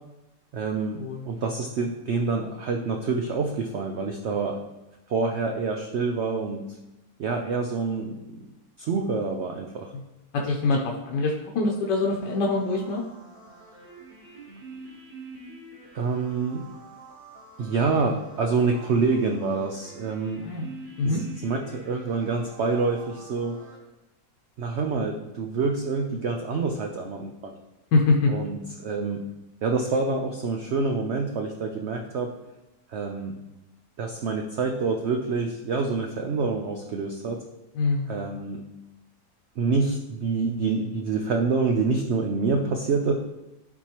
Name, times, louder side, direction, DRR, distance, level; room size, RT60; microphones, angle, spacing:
voice 1, 0.5-4.6 5.1-6.6 7.2-8.4 8.8-9.9 15.9-16.6 17.6-20.5 21.0-21.2 21.4-23.6 24.6-27.5 28.3-29.2 29.6-32.3 32.9-33.4 34.0-37.4 38.1-38.6 39.6-43.1, right 4 dB, 70° right, 2 dB, 0.6 m, -27 dB
voice 2, 10.3-13.0 20.4-20.7 21.0-21.2 27.9-28.3 37.7-38.1, left 3 dB, 80° left, -1 dB, 1.4 m, -24 dB
sound 1, 11.8-23.8, right 3 dB, 30° right, 1.4 m, -46 dB
12.0 x 4.4 x 3.0 m, 0.97 s
omnidirectional pair, 1.8 m